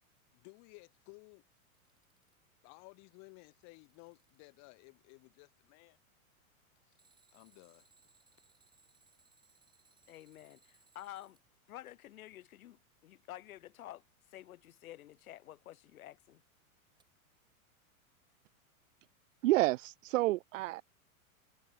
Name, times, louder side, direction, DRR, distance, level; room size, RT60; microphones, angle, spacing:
voice 1, 0.3-1.4 2.6-6.0 6.9-7.0 7.3-7.9, left 30 dB, 40° left, 2.3 m, -57 dB
Alarm, 1.6-2.5 3.2-4.6 6.9-11.4 14.8-14.9 17.0-17.1, right 4 dB, 10° right, 6.3 m, -69 dB
voice 2, 10.1-11.4 11.7-14.0 14.3-16.4, left 13 dB, 75° left, 2.2 m, -50 dB
voice 3, 19.4-20.8, right 18 dB, 65° right, 0.5 m, -29 dB
supercardioid pair, 145°, 43 cm